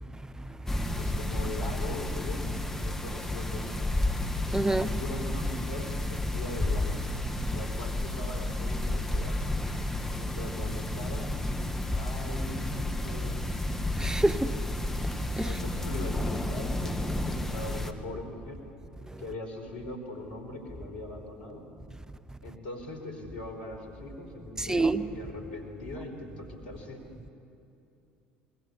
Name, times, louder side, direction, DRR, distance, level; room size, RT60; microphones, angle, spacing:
sound 1, 0.7-17.9, left 1 dB, 5° left, 2.0 m, -31 dB
voice 1, 1.0-2.5 2.7-3.8 4.7-7.0 7.5-9.4 10.1-11.3 11.9-13.5 14.3-14.6 15.3-18.6 19.2-21.7 22.4-27.1, left 2 dB, 75° left, 4.6 m, -41 dB
voice 2, 4.5-4.9 14.0-14.5 15.4-15.5 24.6-25.0, right 2 dB, 10° right, 1.0 m, -26 dB
26.5 x 21.0 x 8.6 m
figure-of-eight pair, 65°, 5 cm